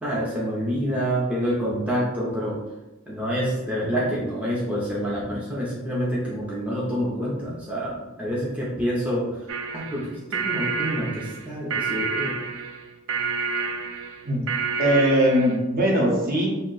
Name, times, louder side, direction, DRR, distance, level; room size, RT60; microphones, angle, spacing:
voice 1, 0.0-2.6 3.1-9.5 9.7-12.3, equal, 5° right, -7 dB, 0.5 m, -27 dB
sound 1, 9.5-15.6, right 5 dB, 70° right, 0.4 m, -29 dB
voice 2, 14.8-16.5, equal, 45° right, -3 dB, 0.7 m, -20 dB
2.6 x 2.1 x 3.8 m, 1.1 s
head